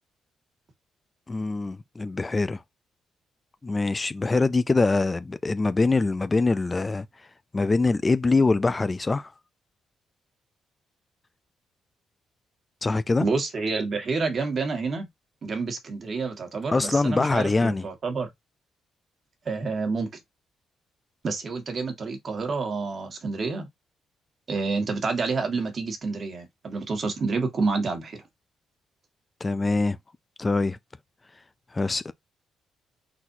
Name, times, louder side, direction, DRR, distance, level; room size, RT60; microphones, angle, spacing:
voice 1, 1.3-2.6 3.6-7.1 7.5-9.3 12.8-13.3 16.7-17.9 29.4-30.0 30.4-30.8 31.7-32.1, left 3 dB, 25° left, 0.4 m, -23 dB
voice 2, 13.2-15.1 15.4-18.3 19.4-20.1 21.2-23.7 24.5-28.2, right 4 dB, 45° right, 1.6 m, -28 dB
4.2 x 4.1 x 2.7 m
cardioid pair, 90°, 0 cm